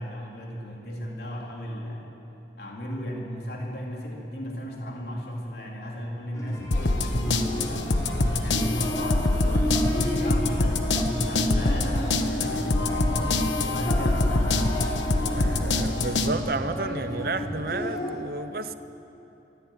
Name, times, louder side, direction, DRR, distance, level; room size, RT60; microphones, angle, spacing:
voice 1, 0.0-2.0 2.6-8.0 8.2-15.0 16.0-16.4, equal, 60° left, -1 dB, 3.9 m, -35 dB
sound 1, 6.3-18.2, left 1 dB, 20° left, 3.7 m, -32 dB
sound 2, 6.7-16.3, left 2 dB, 85° left, 1.3 m, -25 dB
voice 2, 9.3-9.7 12.4-12.6 15.3-18.7, right 3 dB, 55° right, 11 dB, 0.8 m, -32 dB
24.0 x 15.5 x 9.3 m, 3.0 s
head